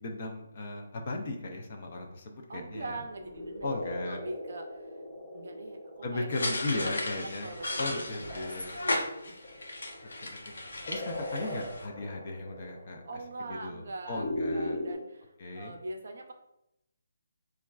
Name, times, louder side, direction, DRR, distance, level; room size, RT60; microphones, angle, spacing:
voice 1, 0.0-3.0 3.6-4.2 6.0-7.5 7.8-8.8 10.2-10.5 10.9-13.0 13.5-14.8 15.4-15.7, left 2 dB, 30° left, 2 dB, 0.4 m, -36 dB
voice 2, 2.5-3.8 4.0-5.0 5.3-9.5 13.0-16.3, right 2 dB, 55° right, 4 dB, 0.5 m, -43 dB
sound 1, 2.9-14.9, left 1 dB, 55° left, 0.8 m, -40 dB
sound 2, 6.3-11.9, left 2 dB, 90° left, 0.6 m, -35 dB
4.1 x 2.3 x 2.3 m, 0.83 s
hypercardioid pair, 175°, 0 cm